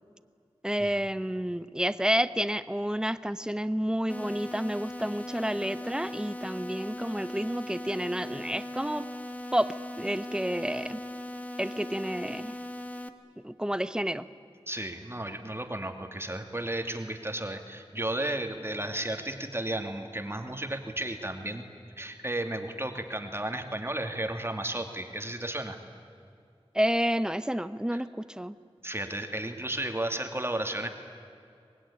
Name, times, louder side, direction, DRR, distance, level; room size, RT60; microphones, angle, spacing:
voice 1, 0.6-9.1 9.5-11.0 11.6-12.6 13.4-14.2 26.7-28.6, equal, 5° right, 13 dB, 0.9 m, -30 dB
sound 1, 4.1-13.1, left 1 dB, 15° left, 1.7 m, -39 dB
voice 2, 14.7-21.6 22.0-25.8 28.8-30.9, right 1 dB, 25° right, 5 dB, 2.3 m, -33 dB
24.5 x 20.5 x 10.0 m, 2.4 s
wide cardioid pair, 55°, 10 cm